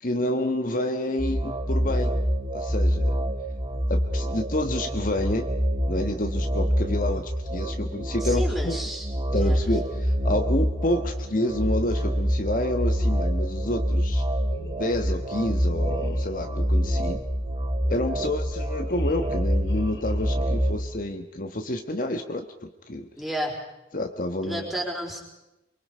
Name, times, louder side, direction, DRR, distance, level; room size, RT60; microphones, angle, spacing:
voice 1, 0.0-2.1 2.5-3.1 3.9-5.5 5.9-8.8 9.3-14.2 14.8-17.2 17.9-23.1 23.9-24.7, left 1 dB, 50° left, 5 dB, 1.3 m, -29 dB
sound 1, 1.2-20.8, equal, 30° right, 2.0 m, -26 dB
voice 2, 8.2-9.1 9.3-9.6 18.2-18.5 23.2-23.6 24.4-25.2, equal, ahead, 0 dB, 4.3 m, -32 dB
sound 2, 13.9-14.2 14.4-15.1 15.8-20.8, left 1 dB, 75° left, 4.9 m, -46 dB
24.0 x 24.0 x 5.6 m, 0.94 s
head